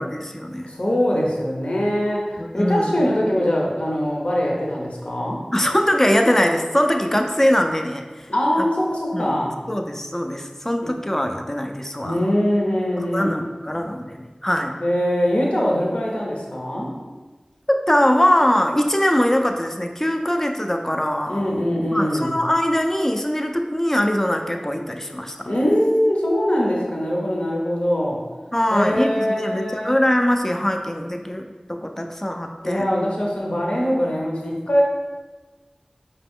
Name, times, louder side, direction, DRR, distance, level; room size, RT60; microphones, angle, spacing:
voice 1, 0.0-0.7 2.4-2.9 5.5-8.3 8.6-8.7 9.1-9.4 9.7-12.3 13.0-14.8 17.7-21.5 21.9-25.5 28.5-32.9, left 1 dB, 20° left, 4 dB, 0.4 m, -22 dB
voice 2, 0.7-5.4 8.3-9.5 12.0-13.4 14.8-16.9 21.3-22.3 25.4-28.2 28.7-30.0 32.6-34.8, equal, 65° left, -3 dB, 0.8 m, -22 dB
4.7 x 2.9 x 3.6 m, 1.3 s
wide cardioid pair, 45°, 2 cm